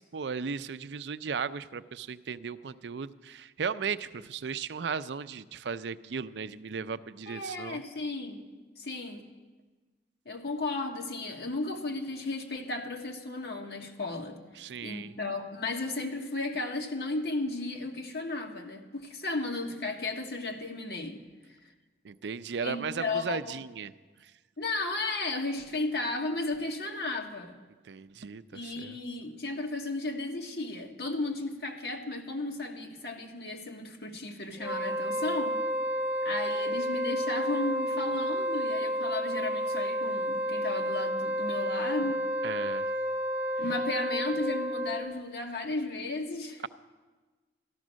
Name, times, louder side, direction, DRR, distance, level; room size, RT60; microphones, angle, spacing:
voice 1, 0.0-7.8 14.6-15.2 22.0-23.9 24.2-24.3 27.9-29.0 42.4-42.9, right 6 dB, 80° right, 13 dB, 0.5 m, -36 dB
voice 2, 7.3-8.4 8.8-9.2 10.2-14.4 14.8-21.2 21.5-21.6 22.6-23.5 24.6-27.6 28.5-35.6 36.2-42.2 43.6-46.6, left 2 dB, 65° left, 3 dB, 1.5 m, -34 dB
Wind instrument woodwind instrument, 34.6-45.2, equal, 5° right, 0.7 m, -31 dB
13.0 x 12.0 x 6.3 m, 1.3 s
head